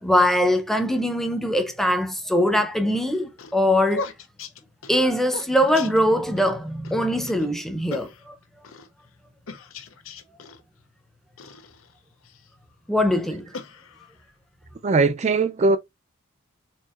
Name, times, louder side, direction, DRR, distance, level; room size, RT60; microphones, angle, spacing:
voice 1, 0.0-4.1 4.9-8.4 12.9-13.5, left 1 dB, ahead, 0.7 m, -22 dB
sound 1, 3.0-6.5 6.8-7.0 7.3-7.5 7.9-8.9 9.5-10.6 11.4-12.5 13.1-14.3, left 4 dB, 80° left, 0.7 m, -39 dB
voice 2, 14.8-15.8, right 3 dB, 35° right, 0.4 m, -20 dB
4.5 x 3.8 x 2.5 m
head